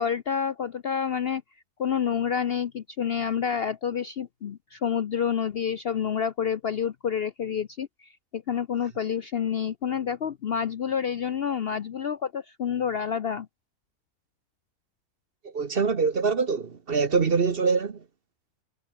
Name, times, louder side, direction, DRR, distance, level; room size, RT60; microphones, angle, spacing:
voice 1, 0.0-1.4 1.8-13.5, left 7 dB, 55° left, 0.7 m, -28 dB
voice 2, 15.4-18.0, right 5 dB, 40° right, 1.2 m, -24 dB
omnidirectional pair, 1.6 m